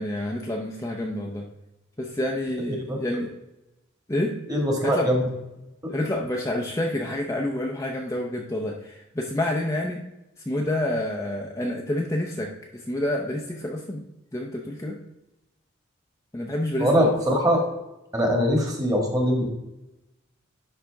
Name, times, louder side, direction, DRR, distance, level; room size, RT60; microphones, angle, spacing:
voice 1, 0.0-1.4 2.0-3.3 4.1-4.4 4.8-5.1 5.9-10.0 10.5-14.0 14.3-15.0 16.3-17.1, left 1 dB, 15° left, -1 dB, 0.7 m, -28 dB
voice 2, 4.5-5.3 16.8-17.7 18.1-19.5, equal, 15° right, 1 dB, 1.7 m, -22 dB
11.0 x 4.3 x 3.5 m, 0.94 s
head